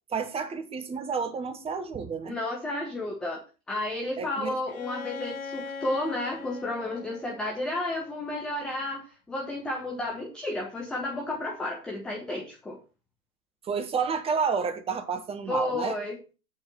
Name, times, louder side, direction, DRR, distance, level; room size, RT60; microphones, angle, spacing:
voice 1, 0.1-2.4 4.2-4.6 13.6-16.0, right 5 dB, 15° right, 1.0 m, -30 dB
voice 2, 2.3-3.4 3.7-12.8 15.5-16.2, left 2 dB, ahead, 0.4 m, -32 dB
Bowed string instrument, 4.7-8.4, left 5 dB, 65° left, 1.1 m, -41 dB
8.3 x 4.2 x 7.1 m
figure-of-eight pair, 100°, 45 cm